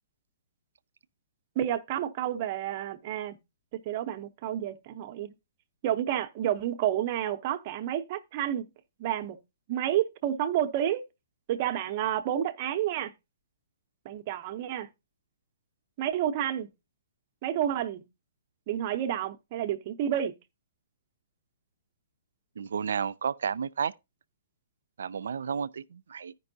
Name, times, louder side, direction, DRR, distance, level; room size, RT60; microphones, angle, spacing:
voice 1, 1.6-3.4 3.9-5.3 5.8-8.7 9.0-9.4 9.7-11.0 11.5-13.1 14.0-14.9 16.0-16.7 17.4-18.0 18.7-20.3, right 11 dB, 35° right, 0.7 m, -30 dB
voice 2, 22.6-23.9 25.0-26.3, right 6 dB, 85° right, 0.4 m, -32 dB
14.5 x 5.3 x 2.7 m
hypercardioid pair, 160°, 0 cm